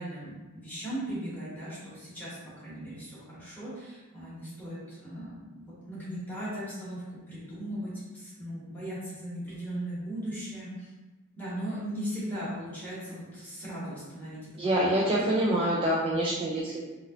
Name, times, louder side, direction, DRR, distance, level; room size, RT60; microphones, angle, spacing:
voice 1, 0.0-10.9 11.4-14.5 15.1-15.5 16.3-16.5, right 1 dB, 10° left, -10 dB, 1.2 m, -38 dB
voice 2, 14.6-16.8, right 1 dB, 25° right, -5 dB, 0.3 m, -26 dB
3.1 x 2.4 x 2.8 m, 1.2 s
head